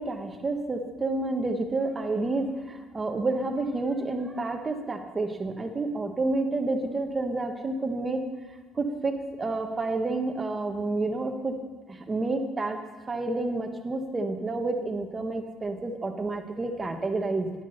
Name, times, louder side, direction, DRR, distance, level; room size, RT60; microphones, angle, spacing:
voice 1, 0.0-8.2 8.7-11.6 11.9-12.8 13.1-17.5, right 2 dB, 15° right, 5 dB, 1.3 m, -29 dB
15.0 x 11.0 x 6.5 m, 1.3 s
cardioid pair, 170°, 0 cm